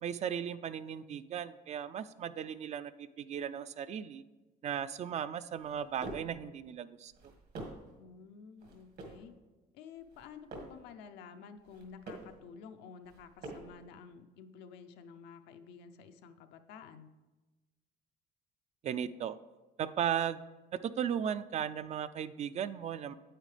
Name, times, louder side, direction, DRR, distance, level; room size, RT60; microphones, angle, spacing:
voice 1, 0.0-4.2 4.6-7.1 18.8-19.4 19.8-20.4 20.7-23.1, right 9 dB, 40° right, 13 dB, 0.4 m, -36 dB
sound 1, 5.6-6.4 7.1-8.0 8.6-9.3 10.0-10.9 11.6-12.4 13.0-13.8, right 2 dB, 70° right, 1.9 m, -47 dB
voice 2, 8.0-9.3 9.7-17.1, left 6 dB, 90° left, 7 dB, 0.6 m, -51 dB
9.0 x 8.1 x 3.3 m, 1.2 s
cardioid pair, 110°, 17 cm